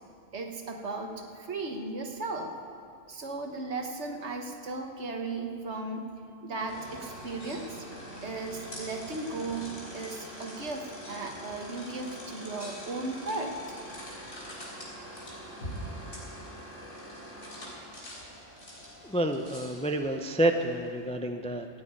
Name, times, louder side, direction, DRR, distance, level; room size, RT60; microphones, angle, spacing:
voice 1, 0.3-2.6 3.1-6.1 6.4-7.8 8.2-13.5, right 3 dB, 65° right, 3 dB, 1.6 m, -36 dB
sound 1, 6.7-21.1, equal, 75° left, 3.8 m, -43 dB
voice 2, 19.0-21.7, right 1 dB, 10° left, 6 dB, 0.4 m, -28 dB
14.0 x 8.9 x 8.8 m, 2.3 s
omnidirectional pair, 1.3 m